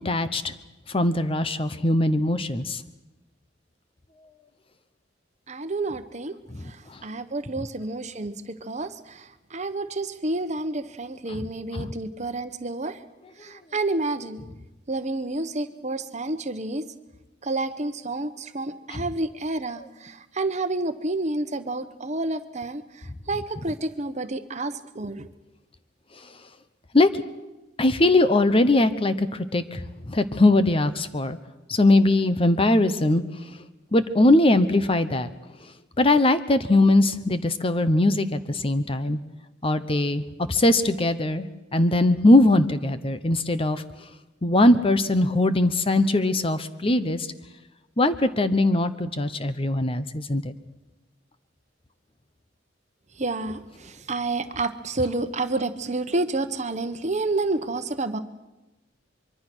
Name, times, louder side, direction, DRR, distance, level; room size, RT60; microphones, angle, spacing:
voice 1, 0.0-0.5 0.9-2.8 6.9-7.0 11.3-11.4 11.7-11.9 18.9-19.0 26.9-27.2 27.8-31.4 31.7-33.2 33.9-35.3 36.0-39.2 39.6-40.2 40.5-41.5 41.7-43.8 44.4-47.3 48.0-50.5, left 2 dB, 30° left, 12 dB, 0.9 m, -21 dB
voice 2, 5.5-6.4 6.6-13.0 13.4-14.4 14.9-16.9 17.4-25.3 53.2-58.2, right 2 dB, 40° right, 9 dB, 1.1 m, -29 dB
24.0 x 23.5 x 6.2 m, 1.1 s
head